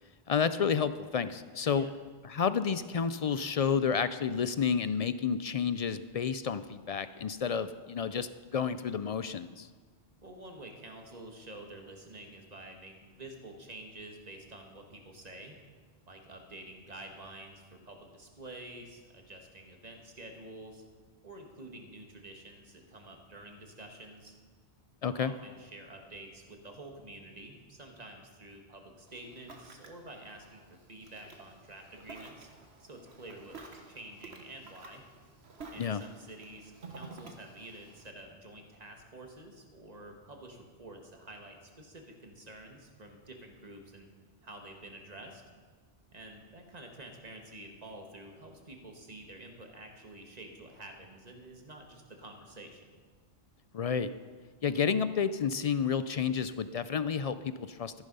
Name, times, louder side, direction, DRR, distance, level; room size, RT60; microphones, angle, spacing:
voice 1, 0.3-1.9 2.2-9.7 25.0-25.3 35.8-36.0 53.7-54.1 54.6-57.9, left 6 dB, 55° left, 13 dB, 0.4 m, -30 dB
voice 2, 10.2-15.6 16.1-20.8 21.2-24.4 25.0-32.5 32.8-35.0 35.7-44.1 44.4-45.4 46.1-52.9, right 1 dB, 40° right, 3 dB, 1.8 m, -49 dB
Ocean, 29.1-38.1, right 3 dB, 80° right, 1.7 m, -51 dB
14.5 x 10.5 x 5.5 m, 1.5 s
omnidirectional pair, 1.1 m